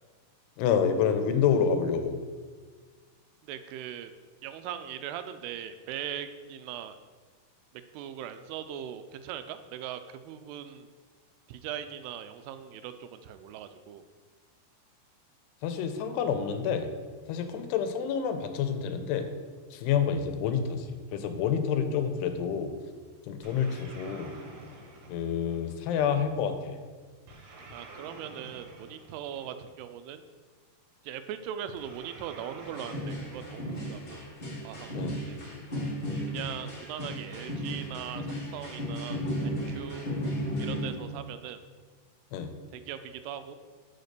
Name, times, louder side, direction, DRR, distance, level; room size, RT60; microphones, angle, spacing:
voice 1, 0.6-2.2 15.6-16.9 17.3-19.3 19.7-22.7 23.3-24.3 25.1-26.8 34.9-35.2 42.3-42.5, left 7 dB, 90° left, 7 dB, 2.8 m, -28 dB
voice 2, 3.4-4.1 4.4-7.0 7.9-10.9 11.5-14.1 27.7-30.2 31.0-34.2 34.6-35.6 36.3-40.1 40.6-41.6 42.7-43.6, right 10 dB, 85° right, 10 dB, 2.5 m, -40 dB
sound 1, 23.4-26.0 27.3-29.8 31.8-34.3, right 2 dB, 65° right, 2.1 m, -49 dB
sound 2, 32.6-40.9, equal, 25° left, 1.3 m, -34 dB
6.5 x 5.2 x 6.6 m, 1.5 s
omnidirectional pair, 4.7 m